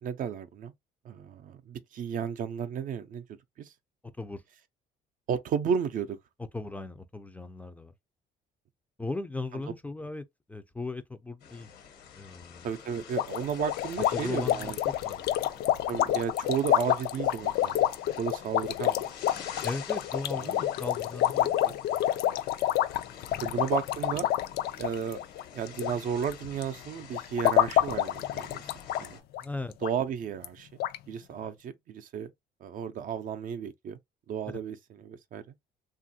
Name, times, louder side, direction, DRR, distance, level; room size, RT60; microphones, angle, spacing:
voice 1, 0.0-0.7 1.0-3.2 3.6-3.7 5.3-6.2 12.6-14.8 15.9-17.9 18.2-19.1 20.4-20.6 21.6-21.8 23.4-24.3 24.8-25.2 25.5-28.6 29.0-29.2 29.8-30.7 31.1-32.3 32.6-34.0 34.3-35.4, right 7 dB, 55° right, 0.5 m, -33 dB
voice 2, 6.5-7.9 9.0-10.2 10.5-11.7 12.1-12.7 14.1-14.8 15.0-15.3 19.6-21.6 23.3-23.6 29.4-29.7 31.4-31.5, left 3 dB, 10° left, 0.4 m, -37 dB
sound 1, 11.4-29.2, left 7 dB, 90° left, 1.2 m, -48 dB
sound 2, 13.2-25.9 26.2-26.6 27.1-29.1 29.3-29.4 29.8-29.9 30.4-30.5 30.8-31.0, left 12 dB, 70° left, 0.4 m, -28 dB
2.9 x 2.4 x 2.7 m
cardioid pair, 110°, 17 cm